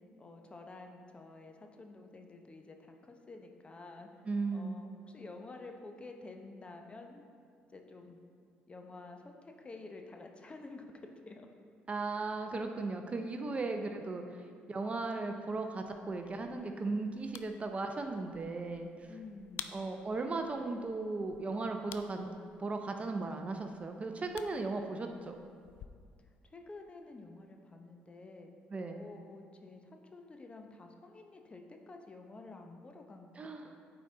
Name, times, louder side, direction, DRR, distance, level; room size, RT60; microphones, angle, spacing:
voice 1, 0.2-4.1 4.5-7.2 7.7-8.2 8.7-10.9 11.2-11.5 19.1-19.8 26.5-28.5 29.0-29.8 30.1-33.8, left 3 dB, 30° left, 3 dB, 0.8 m, -50 dB
voice 2, 4.3-4.8 11.9-14.4 14.7-19.1 19.7-22.3 22.6-25.3 28.7-29.0 33.4-33.8, right 3 dB, 30° right, 5 dB, 0.6 m, -37 dB
sound 1, 15.9-25.9, left 10 dB, 70° left, 0.3 m, -53 dB
8.9 x 4.0 x 3.9 m, 2.1 s
supercardioid pair, 70°, 4 cm